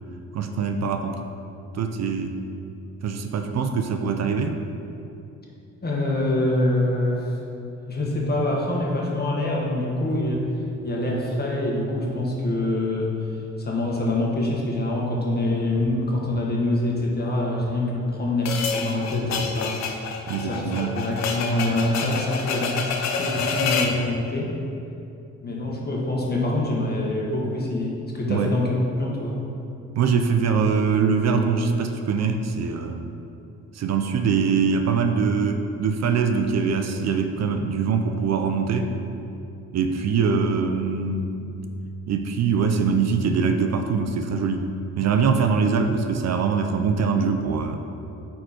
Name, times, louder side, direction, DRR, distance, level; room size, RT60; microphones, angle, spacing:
voice 1, 0.3-1.2 1.7-2.4 3.0-4.6 20.3-21.0 28.3-28.5 30.0-33.1 33.7-38.9 39.7-41.6 42.1-44.7 45.0-47.8, right 5 dB, 60° right, 6 dB, 0.6 m, -23 dB
voice 2, 5.8-7.4 7.9-10.5 10.8-13.1 13.6-19.8 20.4-24.5 25.4-29.4, left 1 dB, 30° left, -3 dB, 1.7 m, -25 dB
sound 1, 18.5-24.0, left 5 dB, 60° left, 0.8 m, -28 dB
9.3 x 4.5 x 4.4 m, 2.7 s
cardioid pair, 90°, 30 cm